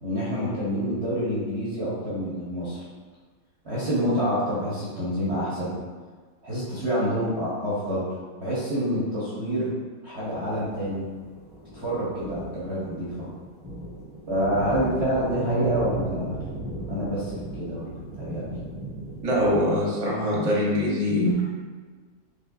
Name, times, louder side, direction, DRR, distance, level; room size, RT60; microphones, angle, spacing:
voice 1, 0.0-2.8 3.6-5.8 6.4-8.0 8.4-9.7 10.0-11.1 11.7-13.3 14.3-16.3 16.9-18.4, equal, 45° right, -9 dB, 0.9 m, -27 dB
sound 1, 10.2-19.6, equal, 10° left, 0.9 m, -38 dB
voice 2, 19.2-21.4, left 1 dB, 25° right, -6 dB, 0.8 m, -23 dB
5.1 x 3.3 x 2.3 m, 1.5 s
omnidirectional pair, 2.1 m